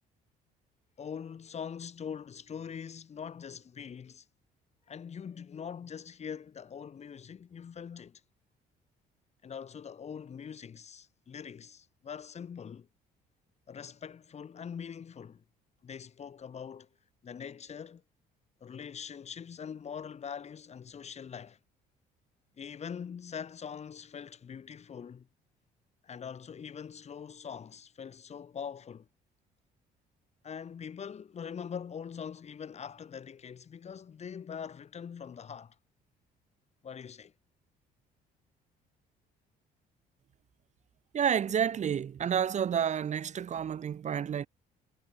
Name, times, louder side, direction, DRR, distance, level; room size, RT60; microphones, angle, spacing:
voice 1, 1.0-4.3 4.9-8.2 9.4-12.9 13.7-15.4 15.8-16.9 17.2-18.0 18.6-21.6 22.6-25.3 26.0-29.1 30.4-35.8 36.8-37.3, left 7 dB, 40° left, 5.4 m, -43 dB
voice 2, 41.1-44.5, right 8 dB, 45° right, 1.9 m, -30 dB
cardioid pair, 110°, 17 cm